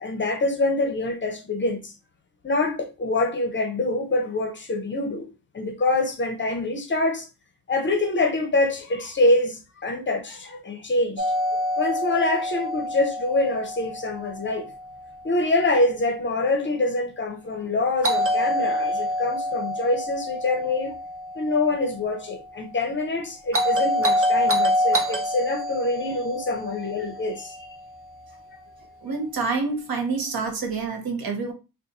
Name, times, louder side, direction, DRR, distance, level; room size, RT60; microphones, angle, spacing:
voice 1, 0.0-1.9 2.4-5.3 5.5-7.3 7.7-11.3 11.8-14.7 15.2-20.9 21.4-27.7, left 2 dB, 35° left, 0.5 m, -25 dB
Doorbell, 11.2-15.2 18.0-22.3 23.5-27.9, equal, 40° right, 0.6 m, -26 dB
voice 2, 29.0-31.5, right 4 dB, 85° right, 1.0 m, -27 dB
2.5 x 2.4 x 4.0 m
wide cardioid pair, 180°, 35 cm